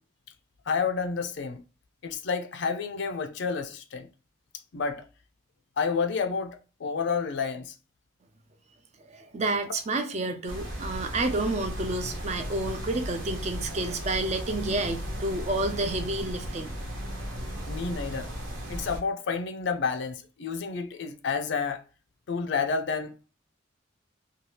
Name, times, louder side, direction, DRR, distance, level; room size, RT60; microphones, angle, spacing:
voice 1, 0.7-1.6 2.0-4.1 4.7-5.0 5.8-7.7 17.7-18.3 18.7-21.8 22.3-23.1, left 5 dB, 60° left, 0.4 m, -30 dB
voice 2, 9.1-16.7, right 2 dB, 35° right, 0.4 m, -30 dB
sound 1, 10.5-19.0, equal, 75° right, 0.9 m, -36 dB
2.7 x 2.3 x 3.1 m
head